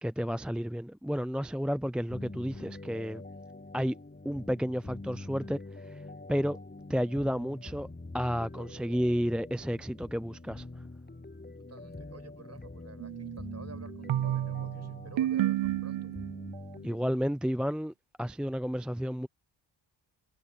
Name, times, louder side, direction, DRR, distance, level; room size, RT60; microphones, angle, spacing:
voice 1, 0.0-3.2 3.7-4.0 4.2-6.0 6.3-6.6 6.9-7.9 8.1-10.7 16.8-17.9 18.2-19.3, equal, ahead, 0.4 m, -31 dB
sound 1, 2.1-17.0, left 2 dB, 20° left, 7.9 m, -45 dB
voice 2, 11.6-16.1, right 4 dB, 35° right, 6.4 m, -51 dB
sound 2, 13.0-16.6, right 13 dB, 80° right, 0.7 m, -32 dB
cardioid pair, 80°, 45 cm